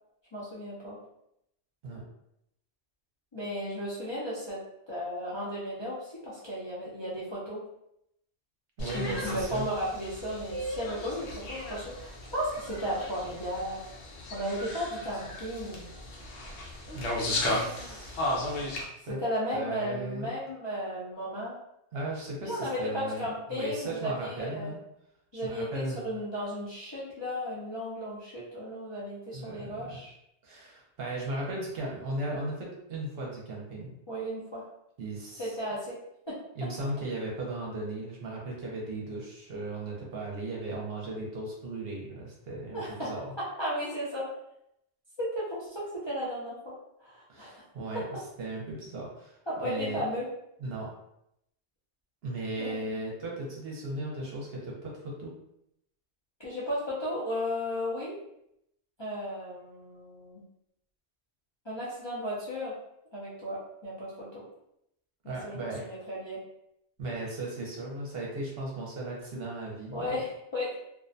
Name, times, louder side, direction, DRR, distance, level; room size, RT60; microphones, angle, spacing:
voice 1, 0.3-1.0 3.3-7.6 8.9-13.9 14.3-15.9 19.1-21.6 22.4-24.7 25.3-30.1 34.1-34.6 35.4-36.0 36.3-36.4 42.7-43.1 43.4-44.3 45.2-46.7 47.0-47.6 47.9-48.0 49.5-50.3 52.6-52.7 56.4-58.1 59.0-60.4 61.6-62.7 63.1-64.4 65.4-66.4 69.9-70.8, equal, 35° left, -9 dB, 0.4 m, -35 dB
sound 1, 8.8-18.8, left 1 dB, 85° left, 0.9 m, -35 dB
voice 2, 8.8-9.7 16.9-18.7 19.1-19.2 19.5-20.3 21.9-24.8 25.3-26.0 29.3-30.0 30.4-33.9 35.0-35.6 36.6-43.3 47.3-49.4 49.6-50.0 50.6-50.9 52.2-55.3 65.2-65.8 67.0-70.2, right 2 dB, 65° right, -2 dB, 0.8 m, -37 dB
2.4 x 2.1 x 2.5 m, 0.79 s
omnidirectional pair, 1.1 m